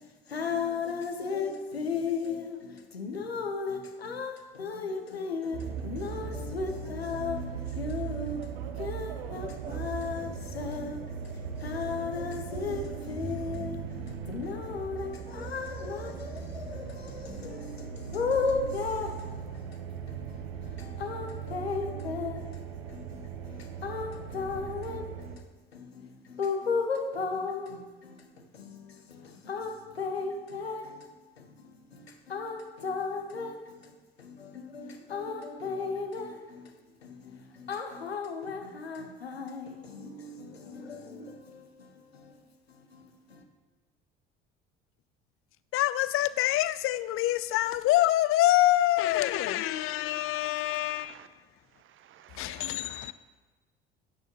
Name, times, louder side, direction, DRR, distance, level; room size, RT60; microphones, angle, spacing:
voice 1, 0.0-19.8 20.1-25.5 25.7-31.1 31.4-36.8 37.0-42.4 42.7-43.4, left 4 dB, 85° left, 1.1 m, -35 dB
sound 1, 5.5-25.4, right 6 dB, 75° right, 1.0 m, -39 dB
voice 2, 45.7-51.3 52.3-53.1, left 15 dB, 45° left, 0.6 m, -26 dB
voice 3, 49.3-51.3 51.6-53.1, right 10 dB, 40° right, 0.8 m, -52 dB
15.5 x 8.8 x 3.1 m
figure-of-eight pair, 55°, 30 cm